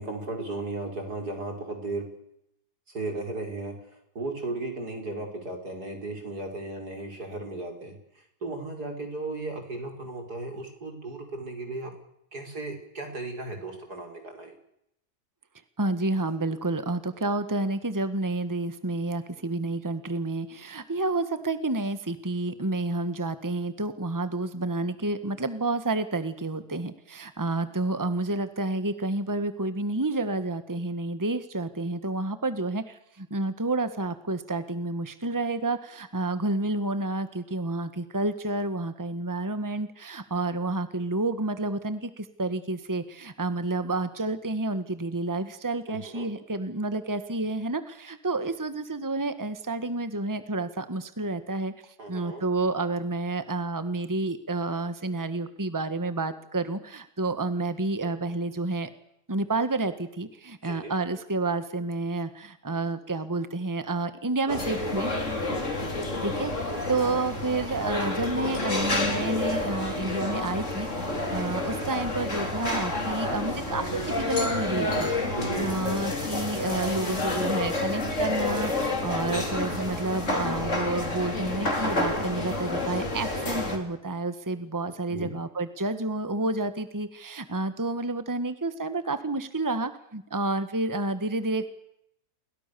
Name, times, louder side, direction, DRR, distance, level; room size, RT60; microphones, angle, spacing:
voice 1, 0.0-2.0 2.9-8.0 8.4-11.9 12.3-14.5 45.9-46.3 52.0-52.4 60.6-60.9 64.5-64.6 66.7-67.0 75.4-75.8 79.2-79.5 85.1-85.3, right 2 dB, 90° right, 4 dB, 6.3 m, -35 dB
voice 2, 15.8-51.7 52.1-58.9 59.3-65.1 66.2-70.9 71.3-75.1 75.6-91.7, right 2 dB, 10° right, 11 dB, 1.5 m, -30 dB
sound 1, 64.5-83.8, left 2 dB, 50° left, 4.5 m, -29 dB
29.5 x 23.0 x 7.0 m, 0.78 s
omnidirectional pair, 1.6 m